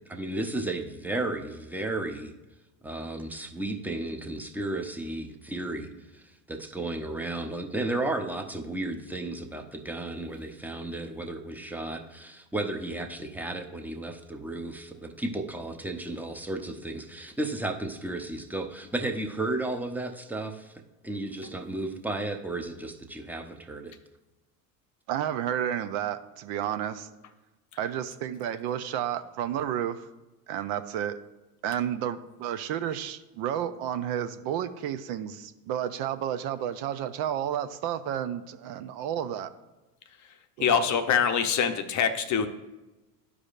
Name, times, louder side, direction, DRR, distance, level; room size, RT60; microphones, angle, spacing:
voice 1, 0.1-2.3 2.8-5.9 6.1-23.9, right 2 dB, 5° right, 4 dB, 0.7 m, -33 dB
voice 2, 25.1-27.1 27.8-30.1 30.5-31.1 31.6-39.5 40.6-40.9, right 10 dB, 60° right, 10 dB, 0.6 m, -31 dB
voice 3, 40.6-42.5, left 7 dB, 40° left, 8 dB, 0.7 m, -24 dB
12.0 x 4.9 x 2.5 m, 1.1 s
hypercardioid pair, 85°, 47 cm